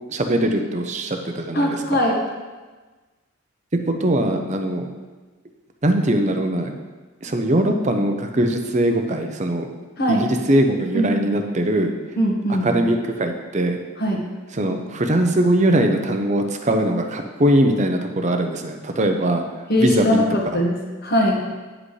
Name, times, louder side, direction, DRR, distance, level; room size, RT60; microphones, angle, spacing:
voice 1, 0.1-2.0 3.9-4.9 5.8-6.7 7.2-9.7 10.1-11.9 12.6-13.8 14.5-19.4 19.8-20.2 20.5-20.6, right 1 dB, 35° right, 5 dB, 0.7 m, -21 dB
voice 2, 1.5-2.2 10.0-10.3 10.9-11.4 12.2-12.7 14.0-14.2 19.7-21.4, equal, 50° left, 0 dB, 1.4 m, -21 dB
9.8 x 7.6 x 3.3 m, 1.3 s
head